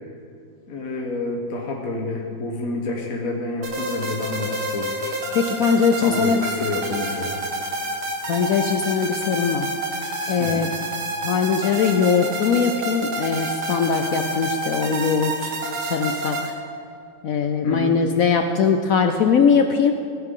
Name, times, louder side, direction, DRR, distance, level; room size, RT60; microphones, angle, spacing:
voice 1, 0.7-5.0 6.0-7.4 10.4-10.7 17.6-18.0, left 3 dB, 50° left, 0 dB, 1.4 m, -28 dB
sound 1, 3.6-16.5, right 1 dB, 85° right, 2.3 m, -29 dB
voice 2, 5.3-6.4 8.3-9.7 10.3-10.7 11.2-16.5 17.2-19.9, left 6 dB, 70° left, 6 dB, 0.8 m, -21 dB
15.5 x 14.5 x 3.8 m, 2.3 s
omnidirectional pair, 2.2 m